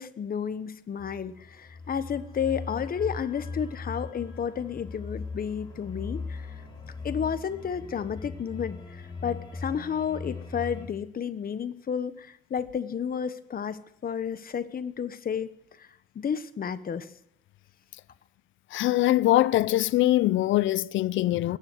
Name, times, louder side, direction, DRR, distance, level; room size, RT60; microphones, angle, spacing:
voice 1, 0.0-6.5 7.0-15.5 15.8-15.9 16.1-17.1 21.5-21.6, left 7 dB, 50° left, 1.2 m, -32 dB
sound 1, 1.0-10.9, left 4 dB, 20° left, 5.5 m, -39 dB
voice 2, 18.7-21.6, left 15 dB, 75° left, 0.5 m, -23 dB
22.5 x 10.0 x 6.2 m
cardioid pair, 90°, 20 cm